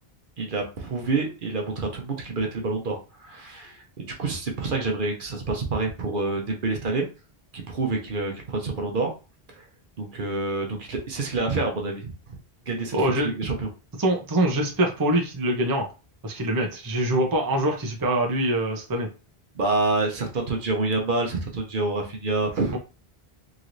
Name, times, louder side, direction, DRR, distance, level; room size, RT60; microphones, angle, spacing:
voice 1, 0.4-7.1 7.5-9.1 9.6-9.7 10.0-12.4 12.7-13.7 19.5-22.8, right 3 dB, 60° right, 2 dB, 0.9 m, -27 dB
voice 2, 12.9-13.3 14.0-15.9 16.2-19.1 22.7-22.8, right 1 dB, 25° right, 2 dB, 0.5 m, -24 dB
3.0 x 3.0 x 2.6 m, 0.32 s
omnidirectional pair, 1.0 m